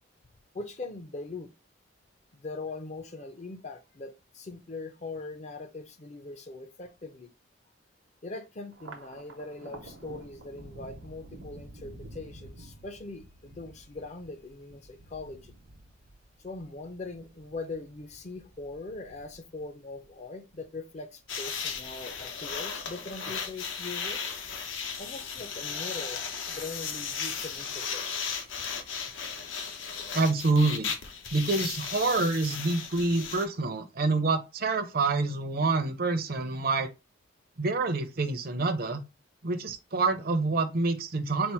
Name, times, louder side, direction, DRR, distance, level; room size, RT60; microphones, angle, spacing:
voice 1, 0.5-1.5 2.3-7.3 8.2-15.6 16.4-24.3 25.0-26.2 26.5-28.1, left 3 dB, 35° left, 0.5 m, -41 dB
Thunder, 8.7-21.4 21.8-22.6 22.9-23.8, right 2 dB, 85° right, 0.9 m, -50 dB
sound 1, 21.3-33.5, left 6 dB, 75° left, 0.8 m, -36 dB
voice 2, 30.1-30.9 31.3-36.9 37.6-39.0 39.4-41.5, right 3 dB, 50° right, 0.6 m, -27 dB
4.3 x 2.0 x 4.4 m
head